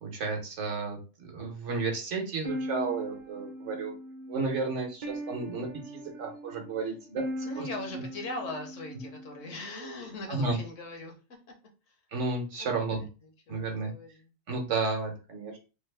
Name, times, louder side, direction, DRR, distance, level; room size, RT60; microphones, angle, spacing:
voice 1, 0.0-3.9 4.3-7.7 7.9-8.0 10.3-10.6 12.1-13.1 13.5-13.9 14.5-15.6, right 3 dB, 65° right, 2 dB, 1.2 m, -32 dB
sound 1, 2.4-9.6, equal, 40° right, 0.6 m, -40 dB
voice 2, 7.4-11.4 11.9-12.0 12.6-13.1 13.5-14.3, left 2 dB, 70° left, 3 dB, 1.2 m, -40 dB
3.4 x 2.0 x 3.2 m, 0.32 s
omnidirectional pair, 1.4 m